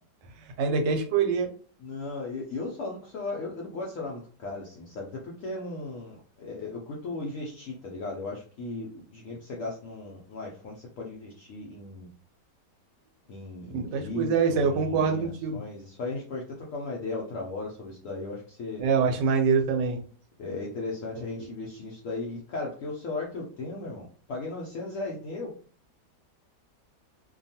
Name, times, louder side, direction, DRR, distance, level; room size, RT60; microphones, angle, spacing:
voice 1, 0.6-1.5 13.7-15.6 18.8-20.0, right 5 dB, 85° right, 4 dB, 1.2 m, -24 dB
voice 2, 1.8-12.1 13.3-18.8 20.4-25.5, left 3 dB, 75° left, -2 dB, 0.7 m, -36 dB
2.8 x 2.3 x 2.7 m, 0.43 s
omnidirectional pair, 1.9 m